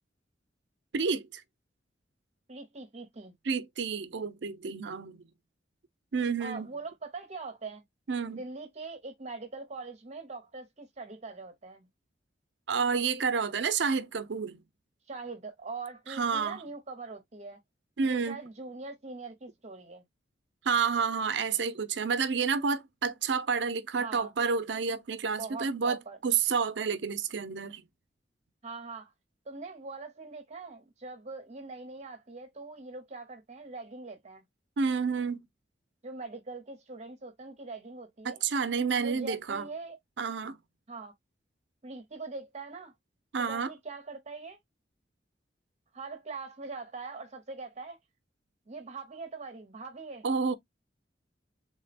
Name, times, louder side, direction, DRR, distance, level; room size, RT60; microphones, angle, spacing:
voice 1, 0.9-1.4 3.4-5.2 6.1-6.7 8.1-8.4 12.7-14.6 16.1-16.6 18.0-18.4 20.6-27.8 34.8-35.4 38.2-39.7 40.2-40.6 43.3-43.7 50.2-50.6, right 5 dB, 75° right, 0.6 m, -29 dB
voice 2, 2.5-3.3 6.4-7.8 8.3-11.9 15.1-17.6 18.0-20.0 24.0-24.3 25.4-26.2 28.6-29.1 29.5-34.4 36.0-38.4 39.0-40.0 40.9-41.1 41.8-42.9 43.4-44.6 45.9-48.0 48.7-50.3, right 3 dB, 40° right, 0.8 m, -42 dB
3.7 x 2.1 x 4.1 m
head